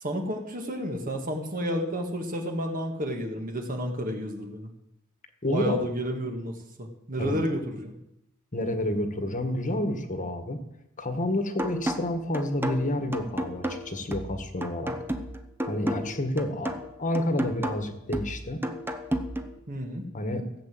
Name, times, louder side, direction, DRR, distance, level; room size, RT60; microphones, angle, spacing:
voice 1, 0.0-4.7 5.5-7.9 19.7-20.0, equal, 40° right, 3 dB, 1.9 m, -31 dB
voice 2, 5.4-5.8 7.2-7.4 8.5-10.6 11.0-14.9 15.7-18.6 20.1-20.4, left 1 dB, 35° left, 8 dB, 1.6 m, -29 dB
sound 1, 11.6-19.6, equal, 10° right, 1.0 m, -33 dB
15.5 x 8.0 x 7.8 m, 0.83 s
head